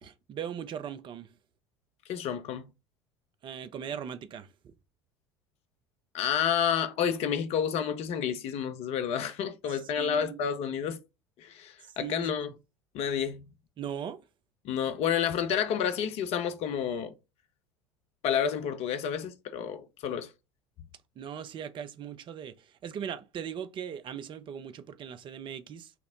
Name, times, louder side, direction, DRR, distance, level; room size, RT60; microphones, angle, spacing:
voice 1, 0.0-1.3 3.4-4.7 9.7-10.4 11.8-12.3 13.8-14.2 21.2-25.9, right 8 dB, 35° right, 0.6 m, -39 dB
voice 2, 2.1-2.7 6.1-11.0 11.4-12.5 12.9-13.4 14.6-17.1 18.2-20.3, left 8 dB, 50° left, 0.7 m, -30 dB
5.9 x 2.1 x 3.7 m
figure-of-eight pair, 70°, 14 cm